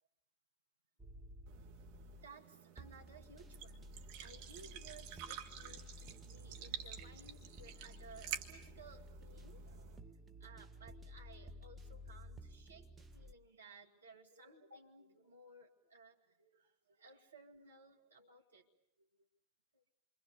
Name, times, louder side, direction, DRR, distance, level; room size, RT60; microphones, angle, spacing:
sound 1, 1.0-2.3 2.8-13.3, equal, 10° right, 1.2 m, -54 dB
sound 2, 1.5-10.0, right 9 dB, 45° right, 1.7 m, -50 dB
voice 1, 2.1-10.0 10.4-18.7 19.0-19.1 19.7-19.8, right 3 dB, 70° right, 1 dB, 2.5 m, -59 dB
28.0 x 24.5 x 6.9 m, 0.75 s
figure-of-eight pair, 90°, 0 cm